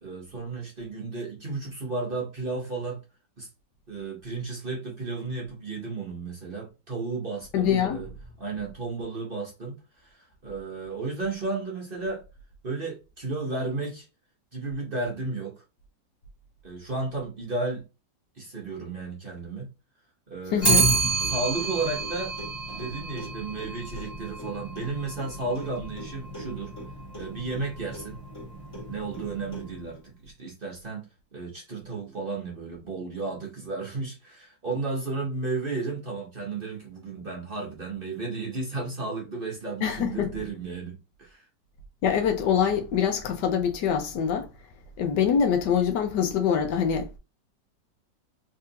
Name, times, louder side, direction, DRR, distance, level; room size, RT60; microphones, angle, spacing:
voice 1, 0.0-3.0 3.4-3.5 3.9-8.1 8.4-12.2 12.6-14.0 14.5-15.6 16.6-17.8 18.3-19.7 20.3-20.8 21.2-22.3 22.7-26.7 27.1-28.2 28.9-41.4, right 3 dB, 35° right, 1.1 m, -33 dB
voice 2, 7.5-8.0 20.5-20.9 39.8-40.3 42.0-44.5 45.0-47.2, left 8 dB, 75° left, 1.3 m, -24 dB
Clock, 20.6-30.0, right 3 dB, 15° left, 1.3 m, -30 dB
3.7 x 3.2 x 2.8 m
omnidirectional pair, 2.0 m